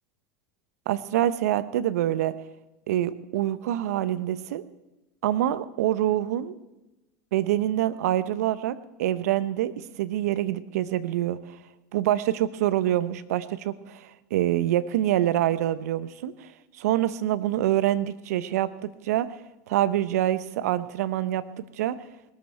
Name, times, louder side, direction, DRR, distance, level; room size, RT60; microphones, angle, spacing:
voice 1, 0.9-2.4 2.9-4.6 5.2-6.5 7.3-11.6 11.9-16.5 16.8-19.3 19.7-21.5 21.8-22.0, right 12 dB, 75° right, 15 dB, 0.9 m, -26 dB
20.0 x 13.5 x 4.4 m, 1.0 s
hypercardioid pair, 90°, 9 cm